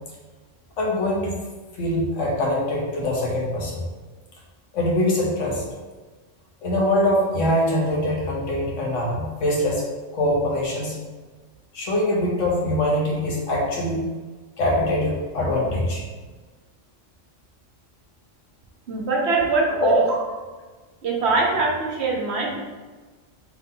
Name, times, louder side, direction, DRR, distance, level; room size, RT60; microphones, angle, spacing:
voice 1, 0.8-1.3 1.7-3.8 4.7-5.6 6.6-9.8 10.1-11.0 11.7-14.0 14.6-16.0 19.7-19.9, left 1 dB, 80° left, -3 dB, 1.3 m, -23 dB
voice 2, 18.9-20.2 21.0-22.6, right 3 dB, 60° right, -1 dB, 1.0 m, -22 dB
3.6 x 2.9 x 3.7 m, 1.3 s
omnidirectional pair, 1.3 m